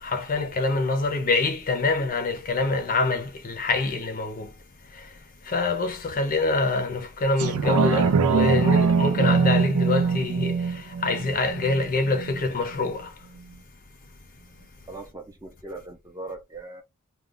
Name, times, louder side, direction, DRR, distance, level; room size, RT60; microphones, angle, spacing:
voice 1, 0.0-4.5 5.0-5.1 5.4-13.1, left 3 dB, 40° left, 0.6 m, -25 dB
sound 1, 7.4-12.4 12.9-13.0, right 5 dB, 90° right, 0.4 m, -23 dB
voice 2, 14.9-16.8, right 2 dB, 15° right, 0.6 m, -39 dB
2.4 x 2.2 x 3.6 m
head